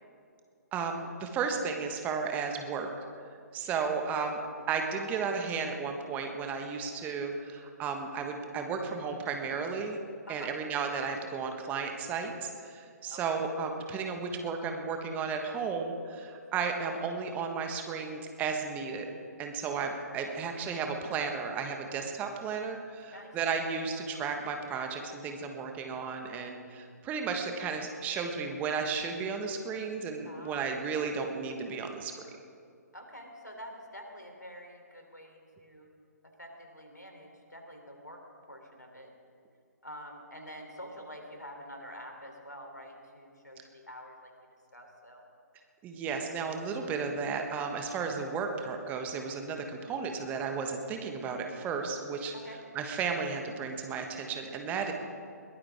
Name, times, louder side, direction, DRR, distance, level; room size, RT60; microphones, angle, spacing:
voice 1, 0.7-2.9 3.5-4.4 4.7-10.0 10.3-19.1 19.4-32.1 45.8-52.3 52.7-54.9, right 5 dB, 15° right, 4 dB, 1.5 m, -34 dB
voice 2, 23.1-23.4 30.2-30.7 32.9-35.9 36.2-38.2 38.5-39.1 39.8-44.3 44.7-45.2 52.3-52.6, equal, 85° left, 2 dB, 3.5 m, -47 dB
21.5 x 18.0 x 3.7 m, 2.3 s
figure-of-eight pair, 130°, 9 cm